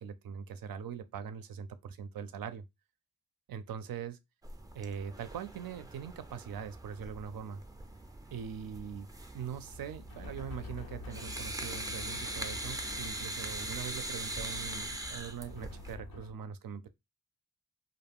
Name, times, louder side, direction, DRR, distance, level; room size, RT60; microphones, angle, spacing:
voice 1, 0.0-2.6 3.5-4.2 4.7-7.6 8.3-9.1 9.3-16.9, right 7 dB, 70° right, 0.5 m, -42 dB
sound 1, 4.4-15.9, right 1 dB, 10° right, 0.4 m, -42 dB
sound 2, 9.7-16.3, left 4 dB, 70° left, 0.6 m, -48 dB
2.3 x 2.0 x 3.4 m
cardioid pair, 45°, 36 cm